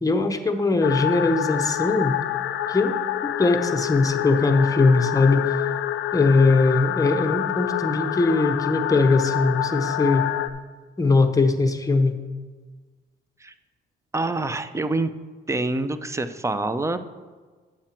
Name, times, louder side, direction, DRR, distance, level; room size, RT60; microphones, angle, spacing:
voice 1, 0.0-2.2 2.7-2.9 3.4-5.5 6.1-10.3 11.0-12.2, left 3 dB, 15° left, 7 dB, 0.9 m, -20 dB
sound 1, 0.8-10.5, left 12 dB, 75° left, 0.5 m, -27 dB
voice 2, 14.1-15.1 15.5-17.0, right 2 dB, 15° right, 11 dB, 0.5 m, -26 dB
9.0 x 7.4 x 4.4 m, 1.4 s
cardioid pair, 90°, 20 cm